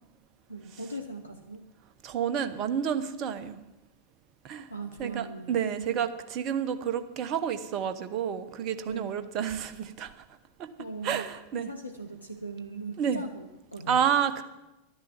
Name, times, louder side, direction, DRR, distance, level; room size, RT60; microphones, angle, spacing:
voice 1, 0.5-1.6 4.7-6.0 8.8-9.3 10.8-11.3 11.5-14.1, right 2 dB, 85° left, 4 dB, 0.9 m, -40 dB
voice 2, 2.0-3.6 4.4-4.7 5.0-10.1 10.6-10.7 11.0-11.7 13.0-13.2 13.9-14.4, right 8 dB, 40° right, 11 dB, 1.0 m, -30 dB
12.0 x 10.0 x 7.5 m, 1.0 s
figure-of-eight pair, 90°, 0 cm